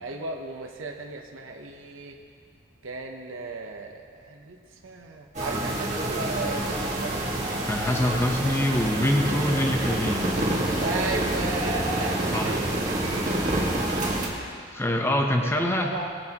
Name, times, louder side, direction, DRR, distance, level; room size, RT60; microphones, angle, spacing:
voice 1, 0.0-2.2 2.8-4.6 4.8-7.2 10.8-13.7 15.5-16.1, right 3 dB, 85° right, 2 dB, 0.8 m, -35 dB
sound 1, 5.3-14.3, right 1 dB, 35° right, 1.7 m, -27 dB
voice 2, 7.7-10.4 12.3-12.6 14.7-15.9, left 1 dB, 10° left, 2 dB, 0.8 m, -25 dB
18.5 x 7.8 x 2.9 m, 2.2 s
head